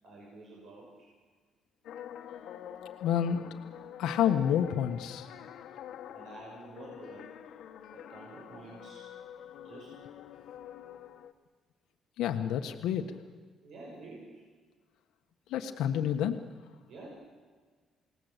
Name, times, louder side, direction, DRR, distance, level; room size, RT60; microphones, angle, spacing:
voice 1, 0.0-1.1 6.0-7.4 7.9-9.1 9.6-10.0 13.6-14.4 16.8-17.1, right 2 dB, 55° right, -2 dB, 6.4 m, -49 dB
sound 1, 1.8-11.3, left 10 dB, 65° left, 1.5 m, -46 dB
voice 2, 3.0-3.4 4.0-5.3 12.2-13.0 15.5-16.4, left 9 dB, 90° left, 6 dB, 1.4 m, -29 dB
29.0 x 19.0 x 8.2 m, 1.5 s
cardioid pair, 175°, 0 cm